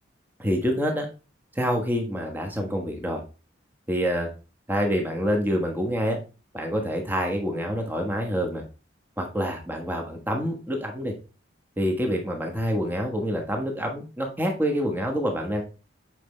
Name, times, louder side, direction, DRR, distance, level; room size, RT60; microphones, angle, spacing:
voice 1, 0.4-1.1 1.5-3.2 3.9-4.3 4.7-6.2 6.5-8.6 9.2-11.1 11.8-15.6, equal, 10° right, 2 dB, 1.2 m, -27 dB
7.7 x 5.1 x 3.2 m, 0.34 s
head